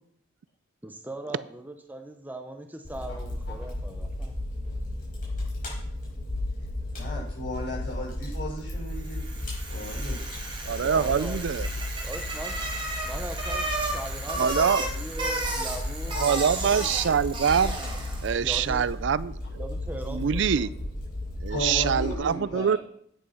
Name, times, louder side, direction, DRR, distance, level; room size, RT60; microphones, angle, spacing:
voice 1, 0.8-4.4 10.8-11.6 12.0-12.6 13.0-17.2 18.4-18.8 19.6-20.7, right 1 dB, 10° right, 5 dB, 0.8 m, -40 dB
Fire, 2.8-22.1, left 1 dB, 45° left, 5.5 m, -34 dB
voice 2, 6.9-9.2 9.7-10.2 16.1-16.2 21.5-22.8, left 1 dB, 65° left, -3 dB, 5.3 m, -35 dB
Bicycle, 9.0-18.4, right 2 dB, 25° right, 2.5 m, -33 dB
voice 3, 10.6-11.7 14.4-14.8 16.2-17.8 18.2-19.6 20.1-20.7 21.4-22.8, right 7 dB, 65° right, 18 dB, 0.4 m, -25 dB
9.3 x 8.4 x 5.6 m, 0.69 s
head